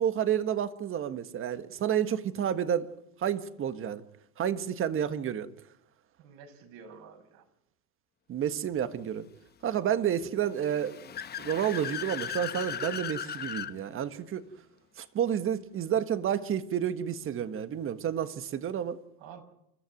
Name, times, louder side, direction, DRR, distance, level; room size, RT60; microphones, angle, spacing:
voice 1, 0.0-2.9 3.2-4.0 4.4-5.5 8.3-9.3 9.6-11.1 11.4-14.4 15.0-19.0, right 9 dB, 30° right, 1.5 m, -30 dB
voice 2, 6.2-7.5 19.2-19.4, right 6 dB, 55° right, 5.8 m, -49 dB
Car / Accelerating revving vroom, 10.5-13.7, left 9 dB, 20° left, 1.0 m, -37 dB
28.5 x 14.0 x 9.4 m
supercardioid pair, 115°, 43 cm